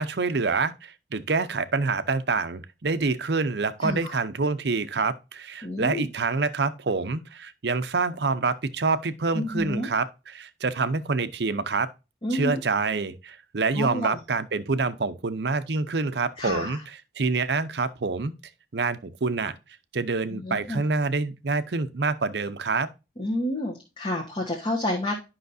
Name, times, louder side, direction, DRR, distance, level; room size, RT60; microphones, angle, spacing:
voice 1, 0.0-10.1 10.3-11.9 12.3-16.8 17.2-18.3 18.7-19.6 19.9-22.9, right 4 dB, 70° right, 0.7 m, -26 dB
voice 2, 3.8-4.2 5.6-6.1 9.3-9.9 12.2-12.6 13.7-14.2 16.4-16.8 20.3-20.8 23.2-25.2, left 1 dB, 30° left, 1.4 m, -29 dB
10.5 x 5.8 x 2.6 m
head